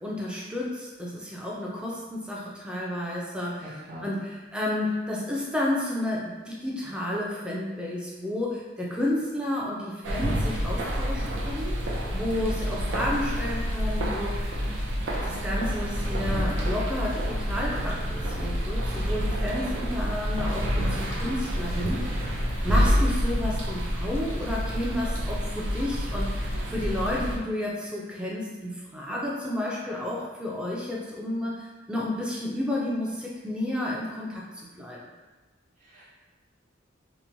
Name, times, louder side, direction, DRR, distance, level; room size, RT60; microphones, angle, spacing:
voice 1, 0.0-3.6 4.0-11.7 12.1-14.6 15.2-22.3 22.6-34.4 34.8-35.0, left 1 dB, 5° right, -5 dB, 0.4 m, -31 dB
voice 2, 3.6-4.1 35.8-36.0, left 1 dB, 40° right, -9 dB, 0.7 m, -42 dB
sound 1, 10.0-27.4, equal, 75° right, 0.5 m, -28 dB
2.9 x 2.1 x 2.6 m, 1.3 s
head